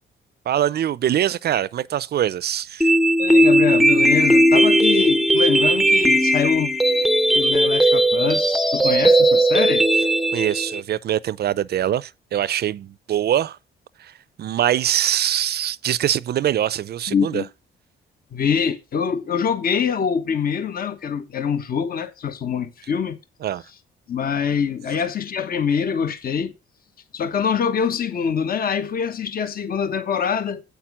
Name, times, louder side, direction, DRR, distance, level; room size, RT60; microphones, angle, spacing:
voice 1, 0.5-2.9 10.3-13.6 14.0-14.1 14.4-17.4 23.4-23.6, right 11 dB, 55° right, 0.5 m, -23 dB
sound 1, 2.8-10.8, right 1 dB, ahead, 0.6 m, -17 dB
voice 2, 3.2-6.7 7.3-9.9 17.1-17.5 18.3-23.2 24.1-26.5 27.1-30.6, left 7 dB, 50° left, 1.1 m, -24 dB
8.4 x 5.9 x 6.0 m
cardioid pair, 90°, 20 cm